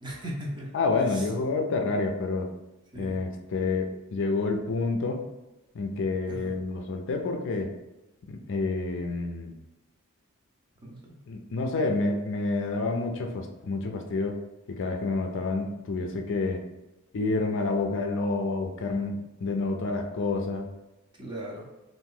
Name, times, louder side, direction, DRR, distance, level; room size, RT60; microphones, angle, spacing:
voice 1, 0.0-0.7 1.1-1.2 2.9-3.2 6.3-6.5 10.8-11.2 21.2-21.6, right 1 dB, 20° right, -2 dB, 0.7 m, -38 dB
voice 2, 0.7-2.5 3.0-5.2 5.7-7.7 8.3-9.5 11.3-14.4 14.8-16.6 17.1-20.7, left 3 dB, 60° left, 3 dB, 0.4 m, -28 dB
2.9 x 2.5 x 3.7 m, 1.0 s
head